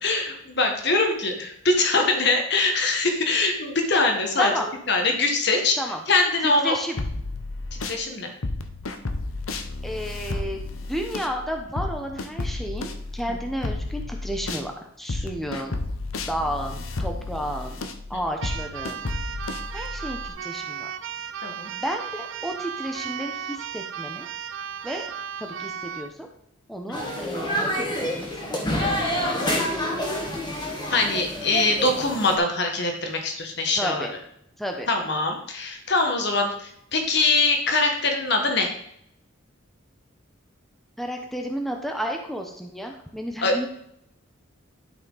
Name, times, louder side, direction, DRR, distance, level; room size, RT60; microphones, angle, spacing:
voice 1, 0.0-4.5 4.9-5.8 6.1-6.8 7.8-8.3 13.3-13.4 18.1-18.2 21.4-21.7 30.9-34.1 34.9-38.7 43.4-43.6, left 3 dB, 55° left, 3 dB, 1.6 m, -23 dB
voice 2, 6.4-7.0 9.8-10.6 10.9-14.7 15.0-15.8 16.3-17.8 18.1-19.0 19.7-20.9 21.7-24.3 24.8-25.0 25.4-26.3 26.7-27.8 28.2-29.0 29.3-30.0 33.8-34.1 34.6-34.9 41.0-43.7, equal, ahead, 2 dB, 0.9 m, -32 dB
sound 1, 7.0-8.0 8.4-14.7 15.1-20.3, left 2 dB, 90° left, 0.9 m, -32 dB
Keyboard (musical), 18.4-26.1, right 7 dB, 70° right, 0.5 m, -35 dB
sound 2, 26.9-32.4, equal, 20° left, 1.7 m, -27 dB
11.5 x 6.0 x 4.0 m, 0.73 s
head